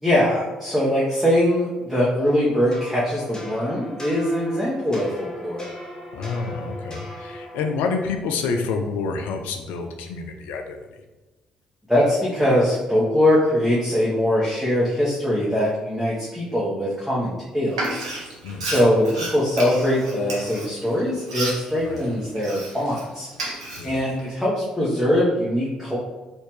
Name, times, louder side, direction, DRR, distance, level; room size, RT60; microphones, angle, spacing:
voice 1, 0.0-5.6 11.9-18.0 18.6-23.3 23.8-26.0, left 1 dB, ahead, -8 dB, 1.1 m, -22 dB
sound 1, 2.2-8.1, left 1 dB, 20° left, 0.9 m, -39 dB
voice 2, 6.1-10.8 18.4-18.7 21.8-22.0 23.8-24.0, left 4 dB, 65° left, 4 dB, 0.5 m, -28 dB
Frying (food), 17.7-23.0 23.3-24.2, right 2 dB, 80° right, 0.7 m, -32 dB
4.2 x 2.8 x 3.2 m, 1.2 s
figure-of-eight pair, 45°, 3 cm